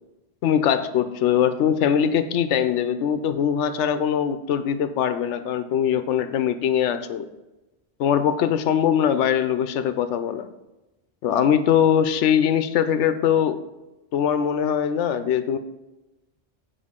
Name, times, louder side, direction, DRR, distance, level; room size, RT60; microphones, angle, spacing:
voice 1, 0.4-7.3 8.0-10.5 11.2-13.6 14.1-15.6, left 8 dB, 85° left, 11 dB, 0.9 m, -22 dB
8.3 x 5.2 x 3.6 m, 1.0 s
omnidirectional pair, 1.2 m